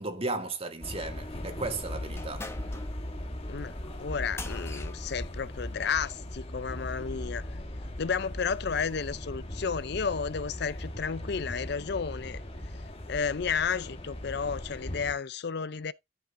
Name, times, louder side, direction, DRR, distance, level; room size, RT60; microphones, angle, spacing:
voice 1, 0.0-2.5, right 2 dB, 30° right, 2.0 m, -35 dB
sound 1, 0.8-15.1, left 1 dB, 30° left, 2.0 m, -39 dB
sound 2, 2.1-6.3, left 3 dB, 15° left, 1.2 m, -46 dB
voice 2, 4.0-7.4 8.0-12.4 13.1-15.9, left 6 dB, 60° left, 0.5 m, -32 dB
13.5 x 5.5 x 3.8 m
head